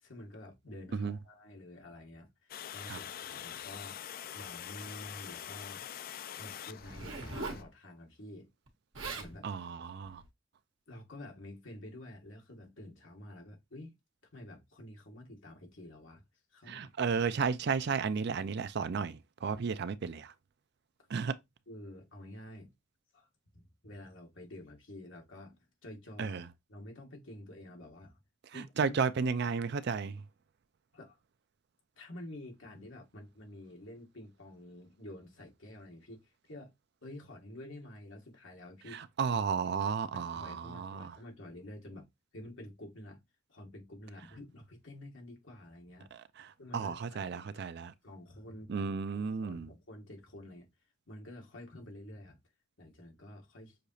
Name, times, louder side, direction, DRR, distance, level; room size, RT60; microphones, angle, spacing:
voice 1, 0.0-5.9 6.4-8.5 9.2-9.5 10.9-14.0 14.3-16.2 16.5-17.2 21.7-22.7 23.1-23.3 23.5-26.4 26.7-28.2 28.5-29.0 30.9-31.2 32.0-36.7 37.0-39.0 39.3-39.4 40.1-42.1 42.3-43.2 43.5-46.1 46.6-47.6 48.0-48.9 49.4-50.7 51.1-52.4 52.8-53.8, left 1 dB, 70° left, 1.7 m, -49 dB
Water, 2.5-7.6, left 10 dB, 45° left, 0.3 m, -44 dB
Zipper (clothing), 6.8-7.7 8.7-8.8 8.9-9.3 10.0-10.3, right 3 dB, 75° right, 1.4 m, -40 dB
voice 2, 9.4-10.2 16.7-20.3 21.1-21.4 26.2-26.5 28.4-30.2 38.9-41.2 46.1-47.9 48.7-49.7, right 5 dB, 55° right, 0.4 m, -33 dB
6.4 x 2.9 x 2.7 m
head